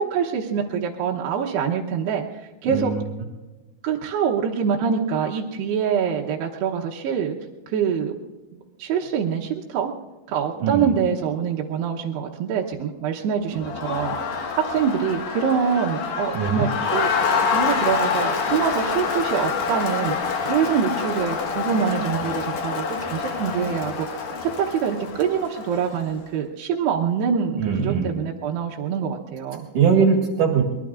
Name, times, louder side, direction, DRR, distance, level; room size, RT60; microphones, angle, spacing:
voice 1, 0.0-2.2 2.6-2.9 3.8-7.4 7.7-8.2 8.5-9.9 10.3-14.2 14.7-17.1 17.5-20.1 20.4-24.1 24.4-29.6, right 7 dB, 75° right, -2 dB, 2.6 m, -25 dB
voice 2, 2.6-3.0 10.6-10.9 16.3-16.6 27.6-28.1 29.7-30.6, right 6 dB, 60° right, 1 dB, 2.5 m, -20 dB
Crowd, 13.5-26.1, left 5 dB, 65° left, 1.8 m, -26 dB
24.5 x 21.5 x 2.5 m, 1.2 s
omnidirectional pair, 5.7 m